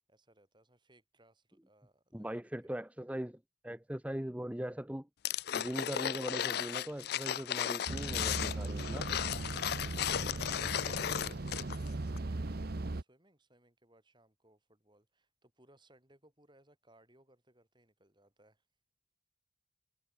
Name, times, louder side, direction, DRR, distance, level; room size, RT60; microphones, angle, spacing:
voice 1, 0.1-2.8 9.4-18.7, right 1 dB, 20° right, 6.1 m, -66 dB
voice 2, 2.1-5.1 5.5-9.1, equal, 5° right, 0.7 m, -40 dB
sound 1, 5.2-11.9 12.2-12.3, left 10 dB, 50° left, 0.4 m, -35 dB
sound 2, 7.9-13.0, right 2 dB, 50° right, 0.8 m, -38 dB
head